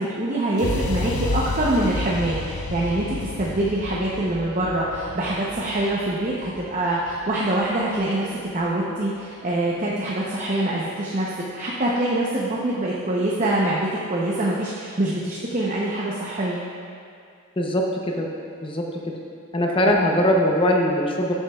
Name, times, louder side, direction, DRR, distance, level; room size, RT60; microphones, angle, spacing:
voice 1, 0.0-16.6 19.8-19.9, right 1 dB, 35° right, -5 dB, 0.8 m, -24 dB
sound 1, 0.6-8.5, left 3 dB, 85° left, 0.6 m, -31 dB
voice 2, 17.6-18.3 18.6-18.8 19.5-21.3, left 1 dB, 25° left, 0 dB, 0.7 m, -21 dB
12.5 x 7.3 x 2.4 m, 2.3 s
head